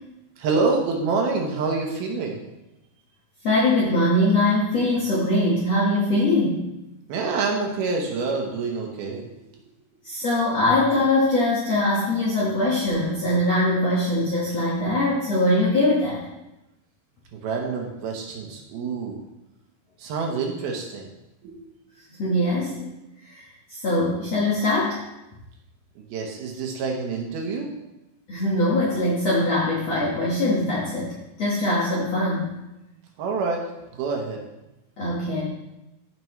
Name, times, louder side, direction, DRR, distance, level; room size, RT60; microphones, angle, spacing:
voice 1, 0.4-2.4 7.1-9.3 17.3-19.2 20.0-21.1 21.4-21.8 26.0-27.7 33.2-33.6 33.9-34.4, right 4 dB, 70° right, 0 dB, 2.7 m, -27 dB
voice 2, 3.4-6.7 10.0-16.2 22.2-22.7 23.3-23.4 23.8-25.0 28.3-31.1 31.4-32.5 35.0-35.4, left 1 dB, 60° left, -6 dB, 1.8 m, -22 dB
14.0 x 6.0 x 3.1 m, 0.94 s
omnidirectional pair, 4.9 m